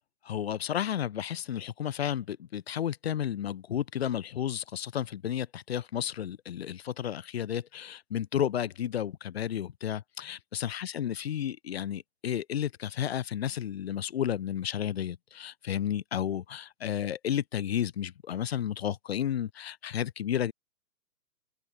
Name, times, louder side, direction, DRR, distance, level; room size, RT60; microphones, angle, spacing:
voice 1, 0.2-20.5, left 10 dB, 40° left, 0.9 m, -32 dB
open air
hypercardioid pair, 155°, 48 cm